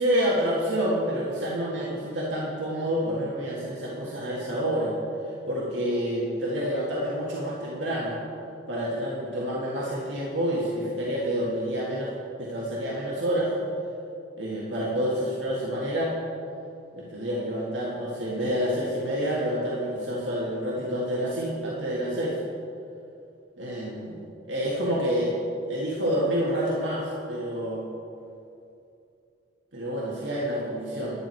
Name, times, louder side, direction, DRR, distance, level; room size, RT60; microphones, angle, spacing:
voice 1, 0.0-4.9 5.5-8.2 8.7-12.1 12.4-13.5 14.4-16.2 16.9-22.4 23.6-24.2 24.5-25.3 25.7-27.8 29.7-31.1, equal, 80° right, -6 dB, 1.8 m, -28 dB
10.5 x 9.8 x 4.5 m, 2.6 s
head